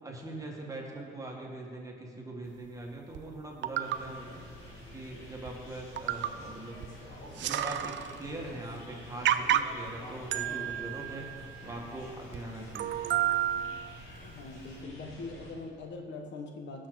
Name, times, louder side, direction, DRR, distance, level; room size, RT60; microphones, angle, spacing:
voice 1, 0.0-13.0, right 1 dB, 15° right, -1 dB, 2.0 m, -42 dB
sound 1, 3.1-3.2 3.6-4.0 5.0-5.1 5.5-5.6 6.0-6.4 6.8-6.9 7.2-8.2 8.7-8.8 9.2-9.9 10.3-11.9 12.3-12.4 12.7-14.1 14.7-14.8, right 11 dB, 70° right, 0.5 m, -31 dB
sound 2, 3.8-15.5, left 1 dB, 90° left, 2.7 m, -49 dB
voice 2, 14.2-16.9, left 3 dB, 65° left, 3 dB, 1.2 m, -42 dB
17.0 x 6.3 x 4.1 m, 2.2 s
cardioid pair, 90°, 20 cm